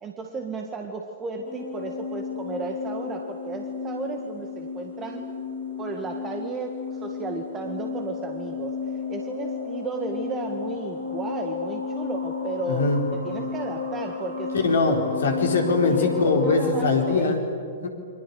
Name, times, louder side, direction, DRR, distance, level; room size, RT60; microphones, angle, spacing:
voice 1, 0.0-5.2 5.8-8.8 9.1-15.0 15.8-17.4, right 4 dB, 20° right, 4 dB, 1.8 m, -34 dB
sound 1, 1.4-17.2, left 6 dB, 85° left, 7.9 m, -32 dB
voice 2, 12.7-13.0 14.5-17.4 17.8-17.9, left 3 dB, 65° left, 3 dB, 4.1 m, -22 dB
30.0 x 24.0 x 6.9 m, 2.3 s
figure-of-eight pair, 105°, 0 cm